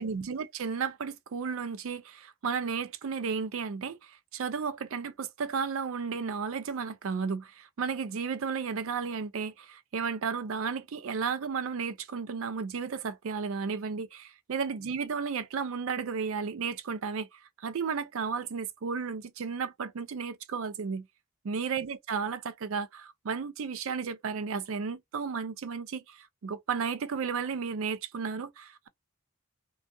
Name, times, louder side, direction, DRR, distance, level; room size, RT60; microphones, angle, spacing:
voice 1, 0.0-21.1 21.4-28.9, right 5 dB, 65° right, 0.4 m, -33 dB
2.6 x 2.3 x 2.2 m
head